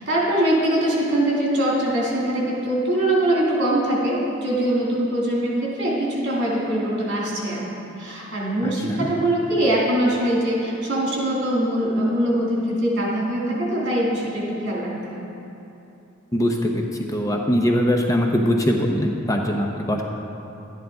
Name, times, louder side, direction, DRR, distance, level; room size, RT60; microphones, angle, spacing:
voice 1, 0.0-7.6 8.0-15.2, right 1 dB, 60° right, -5 dB, 2.8 m, -22 dB
voice 2, 8.6-9.0 16.3-16.8 17.1-20.0, equal, 15° left, 1 dB, 0.6 m, -21 dB
12.0 x 10.5 x 3.8 m, 2.9 s
head